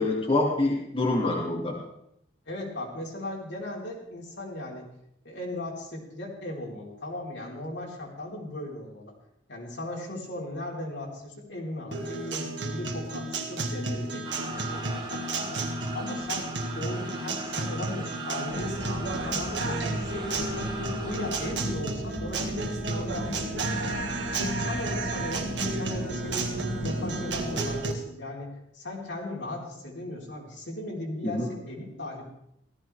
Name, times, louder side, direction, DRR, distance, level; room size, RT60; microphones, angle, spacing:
voice 1, 0.0-1.8 31.2-31.5, left 2 dB, 30° left, -3 dB, 2.5 m, -26 dB
voice 2, 2.5-4.9 5.2-9.1 9.5-16.5 16.7-20.7 21.0-26.5 26.8-32.2, left 1 dB, 75° left, -3 dB, 3.9 m, -37 dB
Guitar, 11.9-27.9, right 2 dB, 75° right, 2.0 m, -32 dB
sound 1, 14.2-21.5, right 3 dB, 25° right, 1.3 m, -40 dB
sound 2, 18.5-27.8, equal, 55° left, 3.0 m, -38 dB
17.0 x 14.5 x 3.4 m, 0.77 s
head